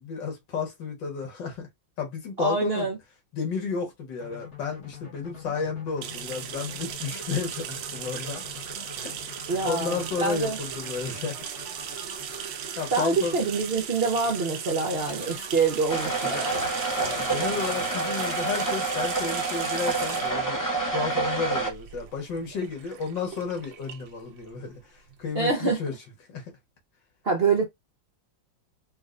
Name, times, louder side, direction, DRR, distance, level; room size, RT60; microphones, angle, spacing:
voice 1, 0.0-1.7 2.0-2.9 3.3-8.4 9.0-11.4 12.8-13.4 17.0-20.6 20.9-24.8 25.2-25.9 26.3-26.4, left 5 dB, 75° left, 2.0 m, -32 dB
voice 2, 2.4-3.0 9.5-10.6 12.9-16.7 25.3-25.8 27.2-27.6, right 4 dB, 45° right, 0.8 m, -26 dB
sound 1, 4.2-19.1, left 4 dB, 40° left, 1.7 m, -45 dB
sound 2, 6.0-25.4, right 9 dB, 90° right, 1.3 m, -38 dB
sound 3, 15.9-21.7, right 3 dB, 25° left, 0.4 m, -28 dB
4.5 x 2.5 x 2.5 m
omnidirectional pair, 2.0 m